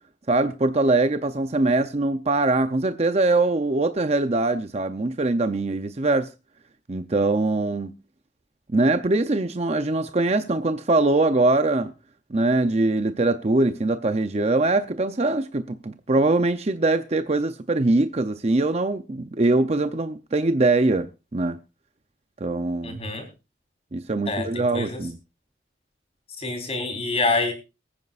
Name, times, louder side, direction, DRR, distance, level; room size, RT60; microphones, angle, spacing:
voice 1, 0.3-6.3 6.9-7.9 8.7-11.9 12.3-21.6 22.4-23.0 23.9-25.2, right 2 dB, 35° right, 0.6 m, -22 dB
voice 2, 22.8-23.3 24.3-25.0 26.4-27.5, left 3 dB, 35° left, 3.9 m, -26 dB
23.0 x 9.5 x 2.5 m
head